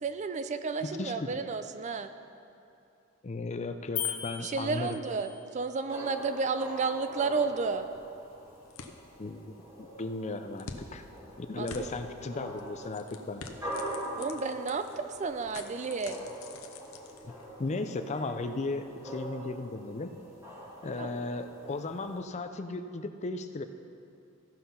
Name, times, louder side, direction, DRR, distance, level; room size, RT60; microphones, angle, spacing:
voice 1, 0.0-2.1 4.4-7.9 11.6-11.9 14.2-16.3 21.0-21.2, right 4 dB, 35° right, 9 dB, 0.4 m, -32 dB
voice 2, 1.0-1.4 3.2-5.0 9.2-11.0 11.4-13.4 17.2-17.3 17.6-20.1 20.8-23.6, left 3 dB, 35° left, 8 dB, 0.5 m, -36 dB
sound 1, 4.0-5.5, left 10 dB, 70° left, 1.3 m, -37 dB
sound 2, 5.9-22.2, right 1 dB, 15° right, 2.7 m, -43 dB
sound 3, 7.5-17.7, left 4 dB, 85° left, 0.8 m, -49 dB
15.5 x 5.7 x 5.6 m, 2.6 s
head